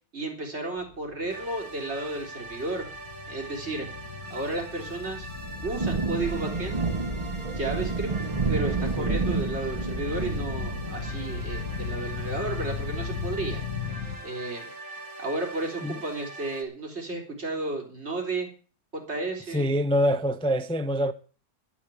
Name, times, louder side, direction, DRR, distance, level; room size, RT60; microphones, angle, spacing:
voice 1, 0.1-2.9 3.3-3.9 4.3-5.3 5.6-6.8 7.6-8.1 8.5-13.6 14.2-14.7 15.2-18.5 18.9-19.7, right 2 dB, 45° right, 4.1 m, -33 dB
sound 1, 0.8-14.2, left 6 dB, 75° left, 1.9 m, -37 dB
sound 2, 1.3-16.6, right 2 dB, 75° right, 3.0 m, -42 dB
Thunder / Rain, 5.2-13.8, right 4 dB, 25° right, 1.0 m, -31 dB
voice 2, 19.5-21.1, equal, 5° left, 0.5 m, -25 dB
12.5 x 8.7 x 8.5 m
omnidirectional pair, 1.5 m